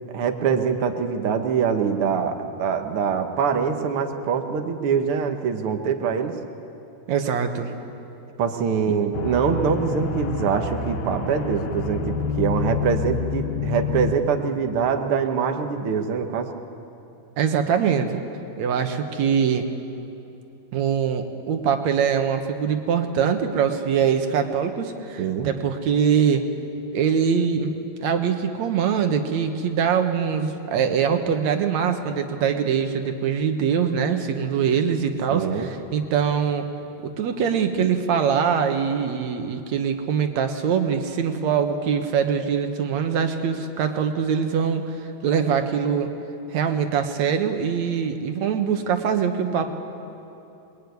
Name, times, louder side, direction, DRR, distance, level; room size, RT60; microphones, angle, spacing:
voice 1, 0.1-6.3 8.4-16.5 25.2-25.5 35.3-35.7, right 6 dB, 85° right, 5 dB, 1.2 m, -24 dB
voice 2, 7.1-7.7 17.4-18.2 18.6-19.7 20.7-26.5 26.9-36.7 37.0-44.9 45.2-46.1 46.5-49.7, right 7 dB, 60° right, 6 dB, 2.0 m, -23 dB
sound 1, 9.1-14.1, left 5 dB, 55° left, 2.5 m, -28 dB
24.5 x 21.5 x 9.5 m, 2.9 s
omnidirectional pair, 4.5 m